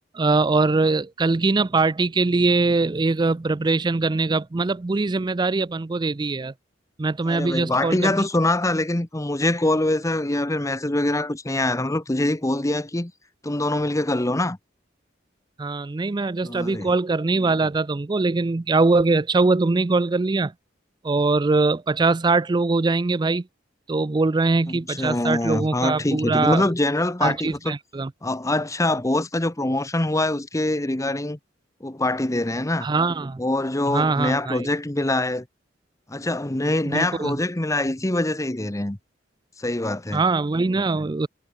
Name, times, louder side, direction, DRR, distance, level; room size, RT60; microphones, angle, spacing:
voice 1, 0.1-6.5 7.0-8.2 15.6-20.5 21.0-23.4 23.9-26.6 27.2-28.1 32.8-33.4 33.9-34.7 36.9-37.4 40.1-41.3, right 3 dB, 25° right, 0.4 m, -22 dB
voice 2, 7.2-13.1 13.4-14.6 16.4-16.9 24.7-27.7 28.2-31.4 31.8-32.9 33.4-35.4 36.1-39.0 39.6-40.2, left 1 dB, 15° left, 1.0 m, -24 dB
head